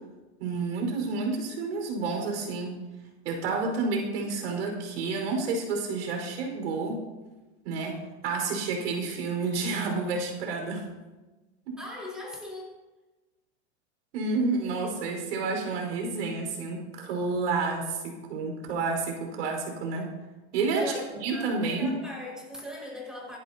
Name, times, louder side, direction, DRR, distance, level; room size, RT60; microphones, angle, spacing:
voice 1, 0.4-2.8 3.2-7.0 7.6-10.9 11.7-11.8 14.1-20.1 20.5-20.9 21.2-21.9, right 4 dB, 80° right, 2 dB, 5.0 m, -30 dB
voice 2, 11.8-12.8 20.8-23.4, left 1 dB, ahead, -4 dB, 5.4 m, -40 dB
25.5 x 11.0 x 2.9 m, 1.1 s
supercardioid pair, 135°, 34 cm